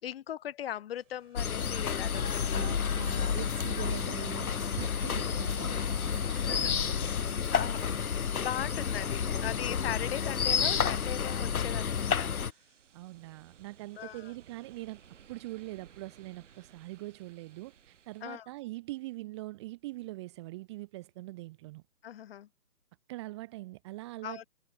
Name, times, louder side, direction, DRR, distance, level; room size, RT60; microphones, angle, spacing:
voice 1, 0.0-2.6 4.9-5.2 6.3-6.7 7.5-8.0 8.4-12.3 14.0-14.3 18.2-18.5 22.0-22.5 24.2-24.5, left 11 dB, 35° left, 5.8 m, -39 dB
Ocean, 0.9-18.3, right 8 dB, 50° right, 6.7 m, -54 dB
sound 1, 1.4-12.5, left 7 dB, 60° left, 2.1 m, -30 dB
voice 2, 2.5-4.5 4.8-7.2 12.9-15.0 15.3-21.8 23.1-24.4, right 19 dB, 15° right, 1.4 m, -43 dB
hypercardioid pair, 155°, 48 cm